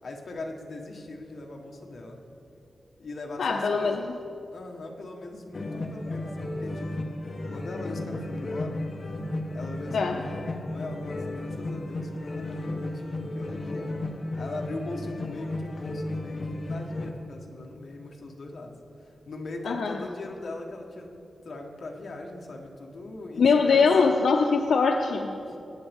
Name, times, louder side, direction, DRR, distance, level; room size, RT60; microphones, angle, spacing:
voice 1, 0.0-2.2 3.0-4.1 4.5-7.1 7.5-8.8 9.5-10.4 10.7-13.9 14.4-21.1 21.4-23.9 25.5-25.6, left 2 dB, 55° left, 1 dB, 1.2 m, -40 dB
voice 2, 3.4-4.1 9.9-10.2 19.6-20.0 23.4-25.3, left 5 dB, 85° left, 4 dB, 0.5 m, -22 dB
sound 1, 5.5-17.1, left 2 dB, 40° left, 1.0 m, -34 dB
19.5 x 9.0 x 3.5 m, 2.8 s
wide cardioid pair, 135°, 0 cm